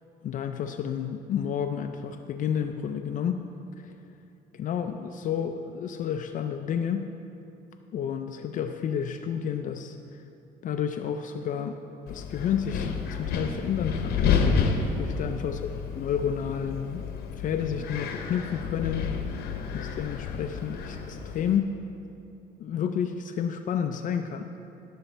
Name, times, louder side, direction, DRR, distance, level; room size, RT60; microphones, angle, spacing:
voice 1, 0.2-3.4 3.8-3.9 4.5-7.1 7.9-10.2 10.6-11.8 12.1-14.2 15.0-15.7 15.9-17.0 17.4-19.1 19.7-21.7 22.6-24.5, left 8 dB, 50° left, 6 dB, 0.4 m, -30 dB
Wind, 12.1-21.6, left 5 dB, 70° left, 0.9 m, -30 dB
12.5 x 6.3 x 4.4 m, 2.7 s
cardioid pair, 110°, 17 cm